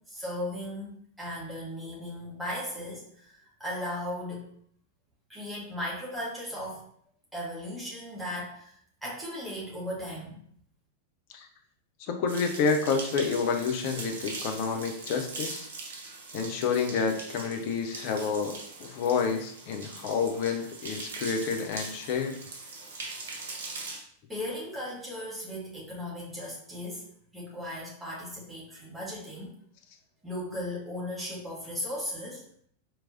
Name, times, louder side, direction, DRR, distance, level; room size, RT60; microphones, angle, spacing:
voice 1, 0.1-4.5 5.3-6.8 7.3-8.7 9.0-10.4 24.3-27.0 27.3-29.5 30.2-32.4, left 1 dB, 5° right, -7 dB, 1.6 m, -37 dB
voice 2, 12.0-15.7 16.3-22.4, left 5 dB, 45° left, 4 dB, 0.7 m, -29 dB
sound 1, 12.3-24.0, right 3 dB, 60° right, 0.9 m, -41 dB
4.5 x 3.1 x 2.6 m, 0.62 s
figure-of-eight pair, 90°, 0 cm